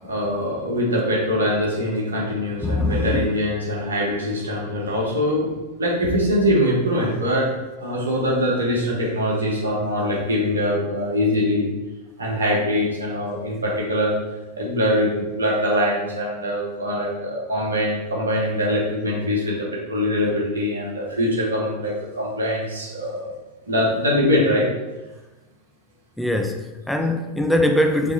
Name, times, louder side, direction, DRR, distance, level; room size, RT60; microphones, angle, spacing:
voice 1, 0.0-5.5 5.8-7.5 7.8-11.7 12.2-14.1 14.6-23.3 23.7-24.7, equal, 70° right, -3 dB, 1.8 m, -23 dB
voice 2, 2.6-3.3 26.2-28.1, left 1 dB, 5° left, 4 dB, 0.4 m, -22 dB
5.8 x 3.7 x 4.7 m, 1.1 s
figure-of-eight pair, 90°, 0 cm